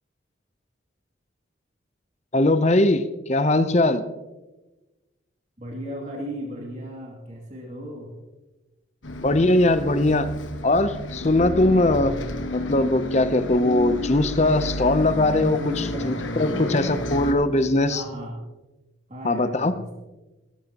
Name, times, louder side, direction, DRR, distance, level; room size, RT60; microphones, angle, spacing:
voice 1, 2.3-4.0 9.2-10.3 10.6-12.1 12.5-18.0 19.2-19.7, left 2 dB, 35° left, 11 dB, 0.7 m, -20 dB
voice 2, 5.6-8.1 15.5-17.0 17.9-18.4 19.1-19.9, equal, 35° right, -2 dB, 2.6 m, -36 dB
Bus, 9.0-17.3, left 1 dB, 75° left, 1.4 m, -31 dB
17.0 x 14.0 x 3.0 m, 1.1 s
head